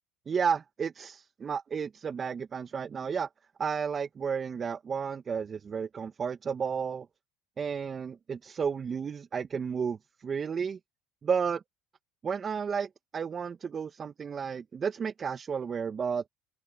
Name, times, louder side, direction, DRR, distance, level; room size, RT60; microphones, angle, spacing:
voice 1, 0.3-3.3 3.6-7.1 7.6-10.8 11.2-11.6 12.2-16.2, right 6 dB, 35° right, 1.7 m, -32 dB
open air
hypercardioid pair, 80°, 0 cm